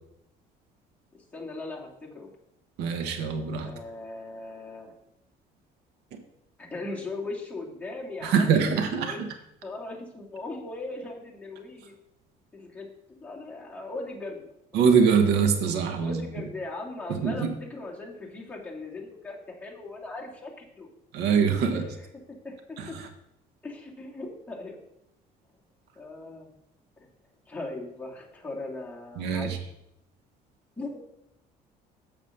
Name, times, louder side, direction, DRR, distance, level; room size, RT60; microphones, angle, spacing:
voice 1, 1.3-2.3 3.6-4.9 6.6-9.2 9.6-11.9 12.5-12.9 13.2-14.4 16.0-20.5 20.8-20.9 21.6-23.0 23.6-24.8 26.0-26.5 27.0-27.1 27.5-29.6 30.8-31.0, left 2 dB, 10° left, -3 dB, 2.3 m, -39 dB
voice 2, 2.8-3.7 8.2-9.3 14.7-16.2 17.1-17.5 21.1-21.8 22.8-23.0 29.2-29.6, right 6 dB, 85° right, 6 dB, 1.2 m, -23 dB
7.2 x 5.0 x 6.5 m, 0.80 s
cardioid pair, 110°, 17 cm